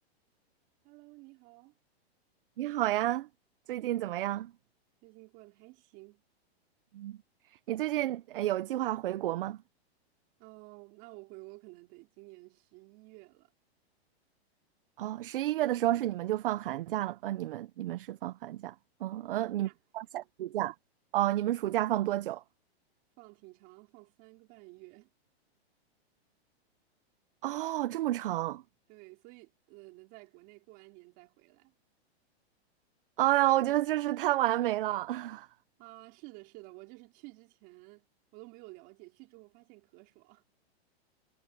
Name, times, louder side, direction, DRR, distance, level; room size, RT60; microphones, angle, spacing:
voice 1, 0.8-1.7 5.0-6.2 10.4-13.5 19.1-19.8 20.1-20.3 23.2-25.1 28.9-31.7 35.8-40.4, right 24 dB, 30° right, 4.8 m, -53 dB
voice 2, 2.6-3.3 3.7-4.5 6.9-7.2 7.7-9.6 15.0-18.7 19.0-20.7 21.1-22.4 27.4-28.6 33.2-35.5, right 14 dB, 55° right, 0.7 m, -30 dB
supercardioid pair, 170°, 32 cm